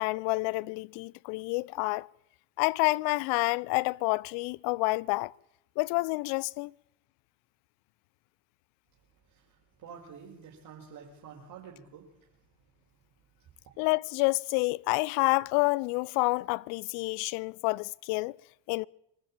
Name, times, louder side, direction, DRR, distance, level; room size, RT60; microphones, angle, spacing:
voice 1, 0.0-2.1 2.6-5.3 5.8-6.7 13.8-18.4 18.7-18.9, left 25 dB, 55° left, 0.7 m, -28 dB
voice 2, 9.3-12.3, right 6 dB, 45° right, 5.3 m, -49 dB
25.0 x 13.0 x 8.7 m
hypercardioid pair, 75°, 45 cm